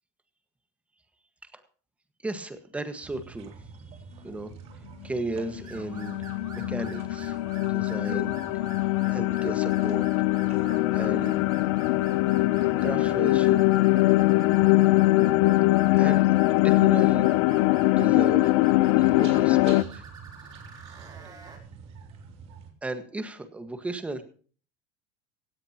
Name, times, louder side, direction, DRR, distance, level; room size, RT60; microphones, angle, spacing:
voice 1, 2.2-3.5 4.2-4.5 5.0-7.4 7.7-8.8 9.1-10.3 10.7-11.5 12.8-13.6 15.9-17.3 17.8-18.5 19.0-20.1 22.8-24.2, right 2 dB, 10° right, 9 dB, 1.6 m, -35 dB
sound 1, 3.0-22.7, right 5 dB, 40° right, 3.0 m, -47 dB
sound 2, 5.4-19.8, left 19 dB, 75° left, 0.7 m, -22 dB
sound 3, 5.6-21.6, right 5 dB, 25° right, 3.7 m, -48 dB
17.0 x 16.5 x 3.0 m, 0.41 s
cardioid pair, 165°, 15 cm